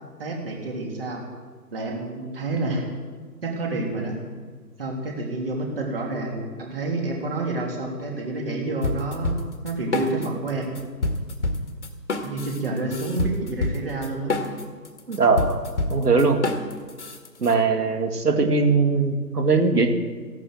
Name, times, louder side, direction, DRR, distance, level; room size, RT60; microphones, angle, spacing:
voice 1, 0.2-1.2 1.7-2.9 3.4-4.2 4.8-9.4 9.6-10.7 12.2-14.3, right 2 dB, 35° right, 0 dB, 3.2 m, -29 dB
sound 1, 8.8-10.5 10.8-17.5, left 2 dB, 45° left, 1.7 m, -27 dB
voice 2, 15.1-15.6 15.9-16.4 17.4-19.9, right 4 dB, 65° right, 6 dB, 2.2 m, -20 dB
14.5 x 12.0 x 7.7 m, 1.5 s
figure-of-eight pair, 155°, 50 cm